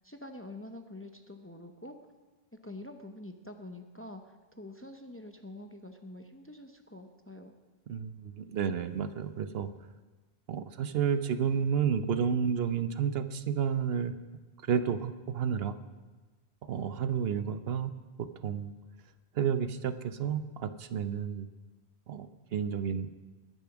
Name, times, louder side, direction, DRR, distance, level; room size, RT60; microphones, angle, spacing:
voice 1, 0.0-2.0 2.6-7.5, left 1 dB, 15° left, 6 dB, 0.7 m, -46 dB
voice 2, 7.9-9.7 10.5-14.1 14.7-15.8 16.7-17.9 18.2-18.7 19.3-21.5 22.1-23.2, right 7 dB, 70° right, 12 dB, 0.9 m, -31 dB
21.0 x 7.0 x 6.0 m, 1.3 s
omnidirectional pair, 1.1 m